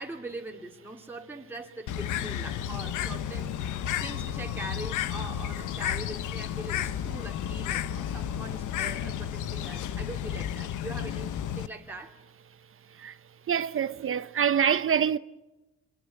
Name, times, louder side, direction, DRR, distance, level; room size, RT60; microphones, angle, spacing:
voice 1, 0.0-3.7 4.0-12.2, right 2 dB, 5° right, 2.8 m, -42 dB
Bird, 1.9-11.7, left 10 dB, 85° left, 1.0 m, -32 dB
voice 2, 13.5-15.2, right 8 dB, 45° right, 0.9 m, -25 dB
25.5 x 23.0 x 7.3 m
cardioid pair, 90°, 30 cm